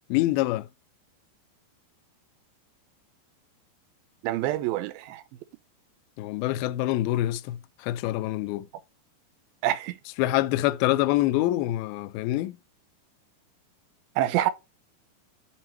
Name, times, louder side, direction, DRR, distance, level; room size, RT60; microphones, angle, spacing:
voice 1, 0.1-0.7 6.2-8.7 10.2-12.6, left 16 dB, 85° left, 2.1 m, -25 dB
voice 2, 4.2-5.2 9.6-10.0 14.2-14.5, right 13 dB, 80° right, 2.3 m, -26 dB
7.3 x 3.0 x 5.5 m
omnidirectional pair, 4.8 m